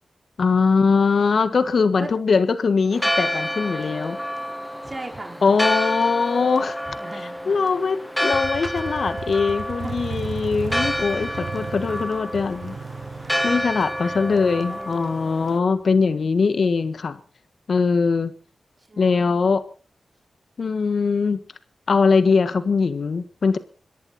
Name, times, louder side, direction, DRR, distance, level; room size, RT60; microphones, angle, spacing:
voice 1, 0.4-4.2 5.4-6.8 7.5-12.8 13.4-17.2 17.7-18.3 19.0-19.6 20.6-21.4 21.9-23.6, left 5 dB, 70° left, 11 dB, 1.5 m, -21 dB
Church bell, 2.9-15.6, equal, 5° left, 0.8 m, -29 dB
voice 2, 4.8-5.5 6.8-7.7 9.8-10.0 11.2-11.5 13.2-13.7 14.0-14.2 14.7-15.3 18.9-19.5, right 2 dB, 35° right, 2 dB, 4.8 m, -39 dB
Motorcycle, 8.3-16.0, right 5 dB, 75° right, 1.2 m, -35 dB
27.0 x 11.0 x 4.3 m, 0.40 s
cardioid pair, 40°, 0 cm